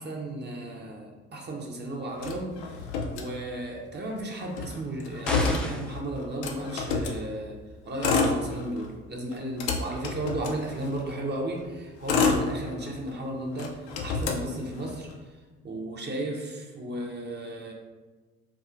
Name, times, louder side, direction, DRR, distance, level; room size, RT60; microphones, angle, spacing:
voice 1, 0.0-2.9 3.1-7.6 7.8-15.3 15.6-17.7, right 1 dB, 30° right, -1 dB, 0.8 m, -34 dB
Motor vehicle (road), 2.2-3.8 4.1-4.2 4.4-7.2 7.9-8.9 9.3-11.1 11.7-13.1 13.5-15.1, left 4 dB, 75° left, 0.6 m, -29 dB
sound 1, 5.3-6.0, left 1 dB, 5° left, 0.4 m, -32 dB
4.7 x 2.4 x 2.4 m, 1.3 s
hypercardioid pair, 55°, 32 cm